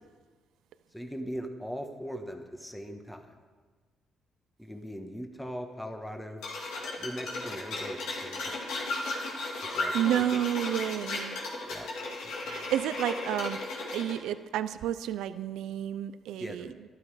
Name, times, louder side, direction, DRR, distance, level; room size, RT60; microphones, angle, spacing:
voice 1, 0.9-3.4 4.6-6.4 7.0-8.6 9.7-10.4 11.7-11.9 12.2-12.7 16.4-16.7, equal, 5° left, 4 dB, 1.3 m, -40 dB
sound 1, 6.4-14.2, left 2 dB, 85° left, 2.6 m, -35 dB
voice 2, 9.9-11.4 12.4-13.6 13.9-16.7, right 11 dB, 85° right, 13 dB, 0.4 m, -30 dB
12.5 x 12.0 x 4.9 m, 1.4 s
cardioid pair, 90°, 0 cm